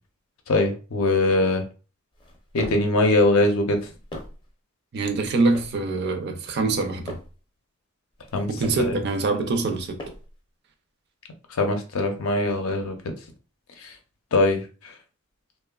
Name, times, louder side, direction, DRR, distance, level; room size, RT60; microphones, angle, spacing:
voice 1, 0.5-1.6 2.5-3.9 8.3-8.5 8.8-9.0 11.5-12.9 13.8-13.9 14.3-14.9, left 2 dB, 70° left, 0.5 m, -22 dB
sound 1, 2.1-2.9 3.6-4.5 5.2-5.8 6.5-7.4 8.1-8.9 9.6-10.4, left 1 dB, 20° left, 0.5 m, -41 dB
voice 2, 4.9-7.2 8.5-10.0, right 3 dB, 50° right, 0.4 m, -24 dB
2.8 x 2.1 x 2.3 m
head